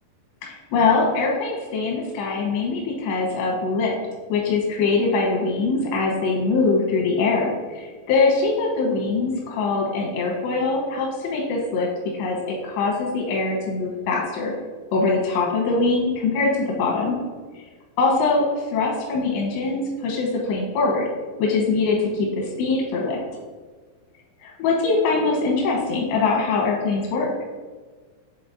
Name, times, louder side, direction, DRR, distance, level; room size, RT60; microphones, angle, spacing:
voice 1, 0.4-4.0 4.3-11.9 12.2-14.5 14.9-17.2 18.0-21.1 21.4-23.2 24.4-27.3, left 3 dB, 90° left, -2 dB, 3.2 m, -22 dB
8.5 x 3.8 x 4.0 m, 1.4 s
omnidirectional pair, 4.9 m